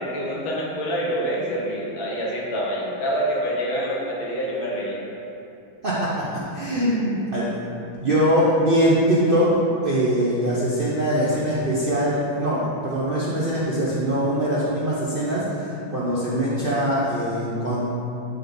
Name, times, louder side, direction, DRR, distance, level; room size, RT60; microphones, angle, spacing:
voice 1, 0.0-5.0, equal, 70° left, -5 dB, 2.0 m, -26 dB
voice 2, 5.8-6.2 6.5-7.5 8.0-9.5 9.8-17.8, equal, 85° right, -8 dB, 0.4 m, -22 dB
9.3 x 3.4 x 4.0 m, 2.8 s
omnidirectional pair, 2.2 m